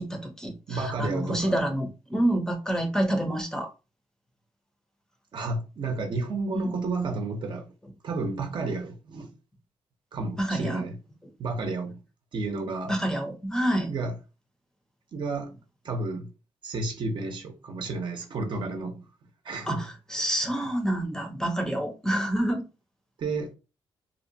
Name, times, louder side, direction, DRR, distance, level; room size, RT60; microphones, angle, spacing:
voice 1, 0.0-3.7 6.5-6.7 10.4-10.8 12.9-13.9 19.7-22.6, right 1 dB, 5° left, 0.6 m, -28 dB
voice 2, 0.7-1.6 5.3-7.7 8.0-9.3 10.1-11.0 11.4-12.0 12.3-12.9 13.9-14.2 15.1-15.5 15.8-16.3 16.6-19.0 19.4-19.9 23.2-23.5, right 3 dB, 60° right, 0.7 m, -31 dB
2.7 x 2.1 x 2.7 m
cardioid pair, 95°, 9 cm